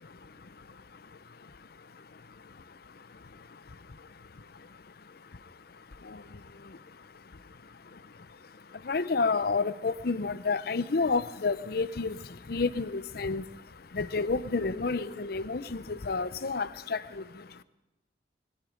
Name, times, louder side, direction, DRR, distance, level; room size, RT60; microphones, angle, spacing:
voice 1, 0.0-17.6, left 4 dB, 60° left, 15 dB, 0.7 m, -33 dB
21.0 x 13.0 x 5.1 m, 0.96 s
head